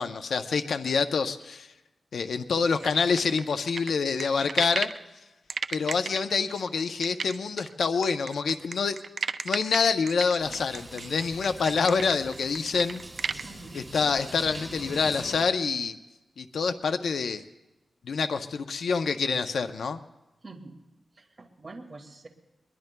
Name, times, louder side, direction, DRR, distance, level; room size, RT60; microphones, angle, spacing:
voice 1, 0.0-1.7 2.1-4.9 5.7-9.0 9.4-13.0 13.7-16.0 16.4-17.4 18.0-20.0, left 5 dB, 90° left, 8 dB, 0.6 m, -26 dB
sound 1, 2.8-5.0 5.5-13.5, right 5 dB, 70° right, 0.5 m, -34 dB
sound 2, 10.4-15.4, right 1 dB, 15° right, 2.8 m, -43 dB
voice 2, 13.4-13.8 20.4-20.8 21.1-22.3, right 3 dB, 35° right, 1 dB, 2.0 m, -45 dB
22.5 x 21.5 x 2.3 m, 1.0 s
wide cardioid pair, 100°, 0 cm